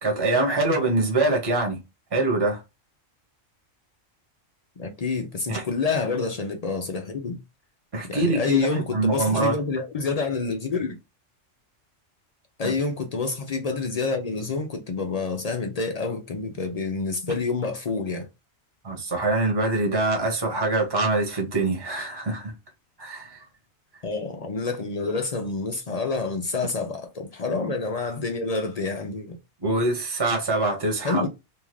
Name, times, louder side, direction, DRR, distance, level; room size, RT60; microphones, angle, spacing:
voice 1, 0.0-1.8 2.1-2.6 5.5-5.6 7.9-9.5 12.6-12.7 18.8-22.5 23.0-23.4 29.6-31.2, right 2 dB, 20° right, 0.9 m, -24 dB
voice 2, 4.8-7.4 8.1-11.0 12.6-18.3 24.0-29.4 31.0-31.3, left 4 dB, 55° left, 0.4 m, -28 dB
2.8 x 2.4 x 3.1 m
omnidirectional pair, 1.3 m